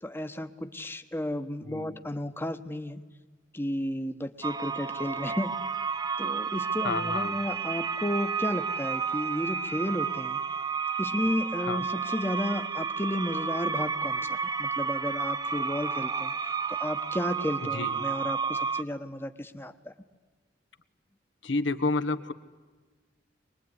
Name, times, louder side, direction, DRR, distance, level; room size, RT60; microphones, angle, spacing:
voice 1, 0.0-3.0 3.5-5.6 6.2-10.4 11.0-19.9, left 1 dB, 10° left, 8 dB, 1.2 m, -33 dB
voice 2, 1.6-2.0 6.8-7.3 11.6-11.8 17.7-18.0 21.4-22.3, left 3 dB, 80° left, 12 dB, 1.4 m, -30 dB
sound 1, 4.4-18.8, right 6 dB, 20° right, 0.7 m, -31 dB
24.0 x 20.5 x 9.8 m, 1.4 s
head